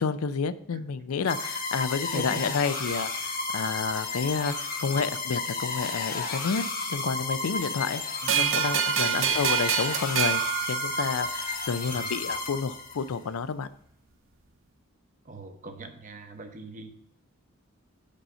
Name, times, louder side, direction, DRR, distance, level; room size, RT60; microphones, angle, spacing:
voice 1, 0.0-4.5 4.8-6.6 6.9-8.0 8.5-13.7, left 5 dB, 80° left, 14 dB, 0.4 m, -30 dB
sound 1, 1.3-13.1, left 3 dB, 40° left, 1.1 m, -32 dB
voice 2, 2.1-2.6 8.2-8.7 9.1-9.6 11.9-12.1 15.3-16.9, right 2 dB, 35° right, 6 dB, 0.8 m, -40 dB
sound 2, 8.3-11.5, right 10 dB, 65° right, 0.6 m, -27 dB
5.6 x 5.3 x 6.5 m, 0.71 s
head